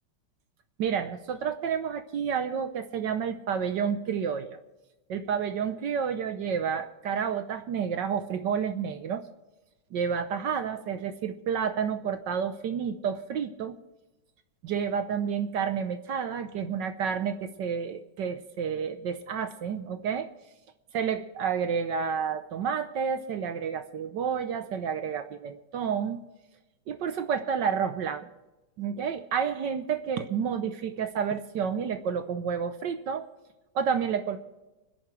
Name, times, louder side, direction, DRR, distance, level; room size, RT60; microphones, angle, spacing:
voice 1, 0.8-4.6 5.1-9.2 9.9-13.8 14.6-20.3 20.9-26.2 26.9-28.3 28.8-33.3 33.7-34.4, right 7 dB, 65° right, 9 dB, 1.3 m, -30 dB
29.5 x 10.5 x 3.2 m, 1.1 s
omnidirectional pair, 2.4 m